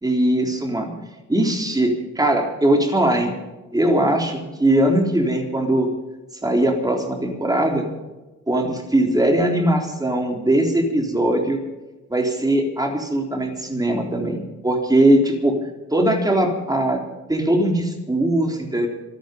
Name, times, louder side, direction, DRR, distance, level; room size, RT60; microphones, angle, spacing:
voice 1, 0.0-0.9 1.3-3.3 3.7-5.9 6.4-7.9 8.5-11.6 12.1-15.5 15.9-17.0 17.3-18.9, right 1 dB, 10° right, 1 dB, 3.8 m, -20 dB
27.0 x 9.5 x 5.4 m, 1.1 s
cardioid pair, 90°, 30 cm